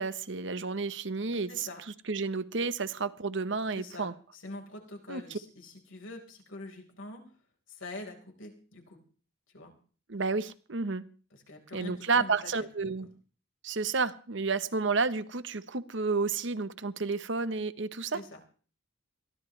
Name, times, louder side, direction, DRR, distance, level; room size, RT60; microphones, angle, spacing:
voice 1, 0.0-1.7 2.1-4.1 5.1-5.2 10.1-11.1 11.7-13.1 13.6-18.2, right 4 dB, 65° right, 13 dB, 0.9 m, -31 dB
voice 2, 1.5-1.8 3.7-7.2 7.7-9.0 9.5-9.7 11.3-12.5 18.1-18.4, left 2 dB, 80° left, 2 dB, 4.4 m, -45 dB
22.5 x 15.0 x 3.2 m, 0.40 s
head